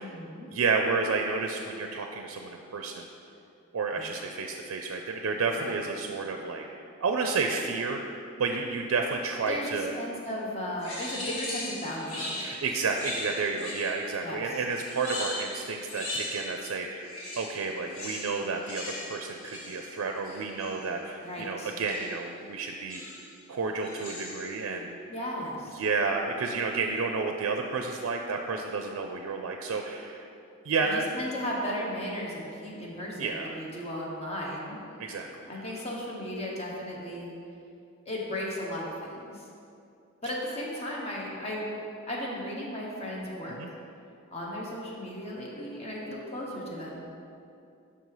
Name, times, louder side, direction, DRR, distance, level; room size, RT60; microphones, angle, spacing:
voice 1, 0.0-0.5 3.9-4.1 5.6-5.7 9.5-12.4 14.2-14.6 21.2-21.7 25.1-25.8 30.8-34.8 35.5-37.4 38.1-39.4 40.2-41.7 42.1-43.6 44.3-47.1, left 1 dB, 30° left, -4 dB, 1.0 m, -35 dB
voice 2, 0.5-3.1 3.7-6.6 7.0-8.0 8.4-9.9 12.4-23.0 23.5-25.0 25.8-30.3 30.6-31.1 33.2-33.6 35.0-35.6 43.5-43.7, right 4 dB, 70° right, 3 dB, 0.4 m, -31 dB
sound 1, 10.8-14.2 14.7-16.7 17.0-20.8 21.9-22.2 22.9-23.4 23.8-24.6, left 1 dB, 75° left, 1.4 m, -39 dB
5.8 x 5.3 x 4.7 m, 2.6 s
head